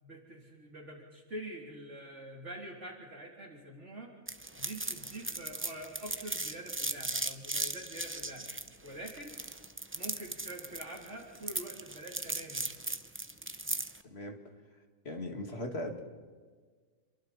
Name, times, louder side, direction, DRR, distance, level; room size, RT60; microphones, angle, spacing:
voice 1, 0.0-4.1 4.6-8.5 8.8-9.4 9.9-12.7, right 1 dB, 50° right, -1 dB, 3.7 m, -45 dB
sound 1, 4.3-14.0, right 2 dB, 15° right, 0.4 m, -37 dB
voice 2, 14.0-14.4 15.0-16.0, left 1 dB, 45° left, 2 dB, 2.6 m, -38 dB
28.0 x 23.5 x 4.3 m, 1.5 s
omnidirectional pair, 1.6 m